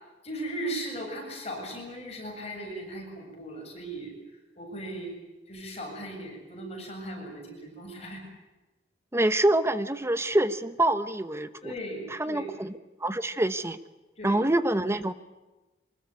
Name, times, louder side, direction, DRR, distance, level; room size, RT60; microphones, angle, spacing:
voice 1, 0.2-4.1 4.6-5.1 5.5-8.2 11.6-12.5 14.2-14.4, right 1 dB, 35° left, 1 dB, 7.9 m, -37 dB
voice 2, 9.1-11.7 12.1-12.7 13.0-13.8 14.2-15.1, right 1 dB, 15° right, 12 dB, 0.9 m, -26 dB
24.5 x 20.5 x 9.5 m, 1.1 s
head